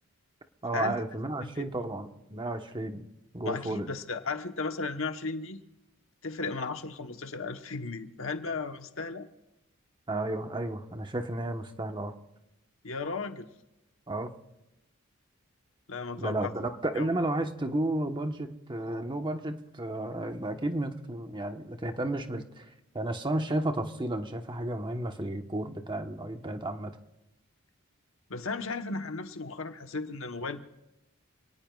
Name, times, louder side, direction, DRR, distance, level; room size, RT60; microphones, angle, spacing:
voice 1, 0.6-3.0 3.3-3.9 10.1-12.1 14.1-14.3 16.2-22.7 22.9-26.9, right 1 dB, 25° right, 5 dB, 1.2 m, -32 dB
voice 2, 3.4-5.6 6.2-9.3 12.8-13.5 15.9-16.5 16.9-17.1 28.3-30.6, left 4 dB, 70° left, 7 dB, 1.2 m, -35 dB
28.5 x 18.5 x 2.4 m, 0.93 s
head